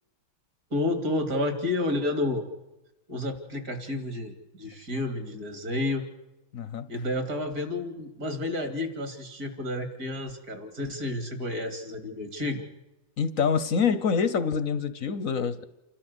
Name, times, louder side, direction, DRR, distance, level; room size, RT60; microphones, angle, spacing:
voice 1, 0.7-2.5 3.1-6.0 6.9-12.7, left 2 dB, 45° right, 7 dB, 3.4 m, -30 dB
voice 2, 6.5-6.9 13.2-15.6, left 6 dB, 50° left, 13 dB, 1.2 m, -26 dB
29.5 x 13.0 x 8.1 m, 0.97 s
omnidirectional pair, 2.4 m